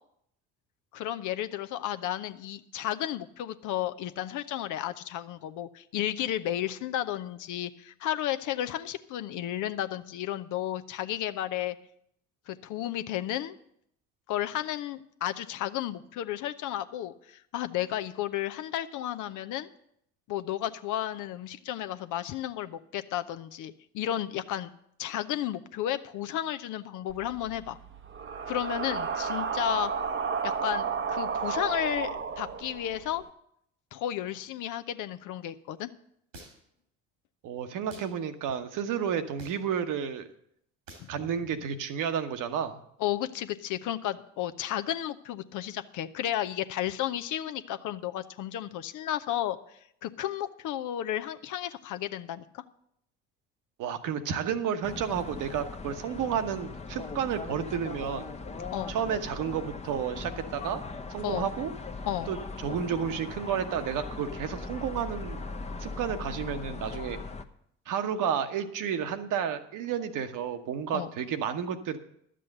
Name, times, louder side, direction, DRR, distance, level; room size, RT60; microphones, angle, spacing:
voice 1, 0.9-11.8 12.5-13.6 14.3-19.7 20.3-24.7 25.0-27.8 28.5-29.9 30.4-33.2 33.9-35.9 41.0-41.1 43.0-52.6 58.7-59.0 61.2-61.5 62.1-62.3 70.9-71.1, left 12 dB, 55° left, 10 dB, 0.7 m, -33 dB
sound 1, 27.1-33.2, right 6 dB, 35° right, 0.8 m, -33 dB
sound 2, 36.3-36.8 37.9-38.1 39.4-39.7 40.9-41.1, right 2 dB, 85° right, 2.4 m, -48 dB
voice 2, 37.4-40.3 41.1-42.8 53.8-58.3 58.9-60.8 61.1-61.7 62.3-65.4 65.8-67.2 67.9-72.0, right 8 dB, 55° right, 8 dB, 1.1 m, -31 dB
sound 3, 54.8-67.4, left 3 dB, 15° left, 0.9 m, -39 dB
11.5 x 7.7 x 6.6 m, 0.72 s
hypercardioid pair, 55°, 38 cm